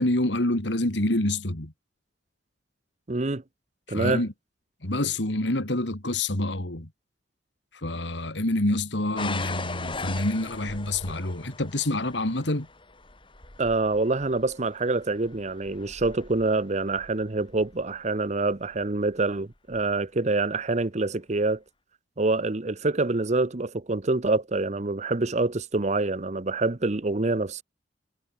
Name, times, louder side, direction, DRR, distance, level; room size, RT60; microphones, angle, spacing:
voice 1, 0.0-1.7 3.9-4.3 4.8-6.9 7.7-12.7, left 1 dB, 80° left, 3.1 m, -27 dB
voice 2, 3.1-3.4 3.9-4.2 13.6-21.6 22.2-27.6, right 3 dB, 40° right, 0.9 m, -26 dB
sound 1, 9.2-18.0 18.7-19.1 19.7-19.8, left 3 dB, 30° left, 4.2 m, -39 dB
head